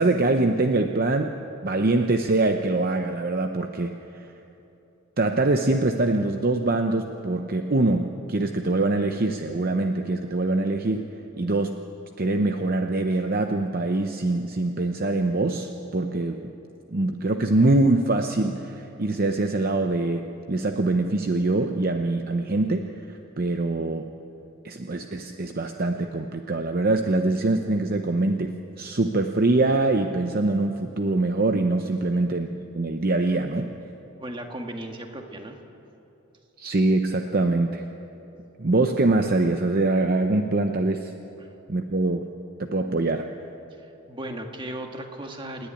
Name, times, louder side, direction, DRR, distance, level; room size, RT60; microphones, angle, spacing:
voice 1, 0.0-1.3 1.6-4.3 5.2-11.8 12.2-16.5 16.9-24.1 24.6-33.7 36.6-37.8 38.6-41.1 41.7-42.3 42.6-43.3, right 2 dB, 45° right, 5 dB, 0.7 m, -24 dB
voice 2, 34.2-35.6 41.4-41.5 43.7-45.7, right 1 dB, 20° right, 3 dB, 1.6 m, -36 dB
27.0 x 10.5 x 9.8 m, 2.9 s
head